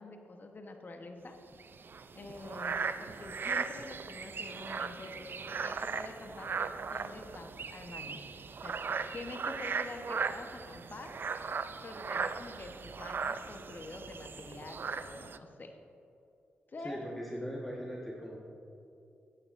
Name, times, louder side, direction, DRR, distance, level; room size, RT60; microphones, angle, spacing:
voice 1, 0.0-1.4 2.1-8.2 8.6-8.7 9.1-11.1 11.8-15.8 16.7-17.0, left 2 dB, 45° left, 4 dB, 1.1 m, -47 dB
sound 1, 1.5-15.4, right 5 dB, 50° right, 0.4 m, -38 dB
voice 2, 16.8-18.4, equal, 5° left, -4 dB, 1.4 m, -39 dB
14.0 x 9.2 x 2.6 m, 2.7 s
supercardioid pair, 50°, 4 cm